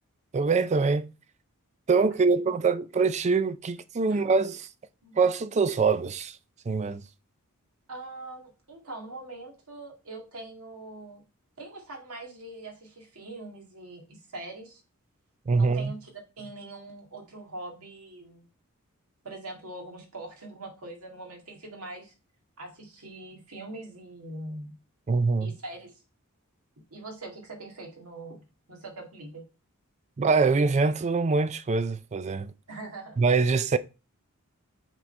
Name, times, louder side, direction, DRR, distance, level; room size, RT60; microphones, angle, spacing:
voice 1, 0.3-1.1 1.9-4.7 5.2-6.4 6.7-7.0 15.5-15.9 25.1-25.5 30.2-32.5 33.2-33.8, right 4 dB, 30° right, 0.4 m, -24 dB
voice 2, 2.1-2.5 4.1-4.3 5.0-5.2 7.9-11.2 11.6-14.8 15.6-16.1 16.4-18.5 19.2-22.1 22.6-24.8 25.4-25.9 26.9-29.5 32.7-33.2, right 2 dB, 80° right, 1.9 m, -42 dB
6.0 x 3.8 x 4.3 m
head